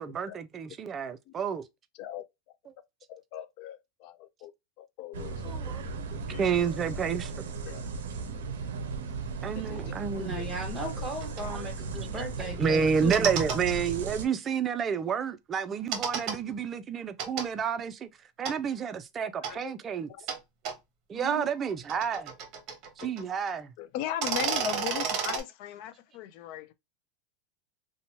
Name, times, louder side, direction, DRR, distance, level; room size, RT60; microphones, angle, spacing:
voice 1, 0.0-1.7 5.4-5.8 6.4-7.3 9.4-10.4 11.5-11.7 12.6-18.1 18.4-20.1 21.1-22.3 23.0-23.7, right 6 dB, 30° right, 0.4 m, -30 dB
voice 2, 3.1-4.5 4.8-5.7 6.1-6.4 7.7-7.8 9.7-9.8 10.1-10.5 12.4-12.5 19.5-19.7 20.2-20.3 23.0-23.1 23.8-26.7, left 11 dB, 60° left, 0.4 m, -38 dB
sound 1, 5.1-14.3, right 4 dB, 90° right, 0.5 m, -36 dB
voice 3, 10.2-13.3 21.1-21.5, right 1 dB, 15° right, 1.2 m, -37 dB
sound 2, 11.2-11.4 12.9-13.6 15.9-16.4 17.2-17.5 18.5-18.6 19.4-19.5 20.3-20.4 20.6-20.7 21.6-23.2 23.5-23.6 24.1-25.4, right 6 dB, 50° right, 0.8 m, -31 dB
2.7 x 2.2 x 2.7 m
supercardioid pair, 120°, 0 cm